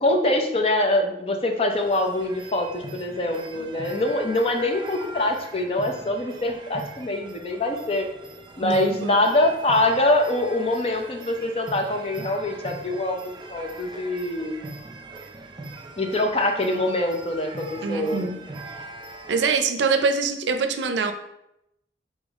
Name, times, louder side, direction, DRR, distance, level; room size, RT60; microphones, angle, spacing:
voice 1, 0.0-8.1 8.6-14.6 16.0-18.3, left 1 dB, 35° left, 4 dB, 0.6 m, -24 dB
sound 1, 1.7-19.6, right 2 dB, 25° right, 0.4 m, -41 dB
voice 2, 8.6-9.2 17.8-18.4 19.3-21.1, right 4 dB, 80° right, 8 dB, 0.5 m, -24 dB
4.1 x 3.5 x 3.5 m, 0.82 s
head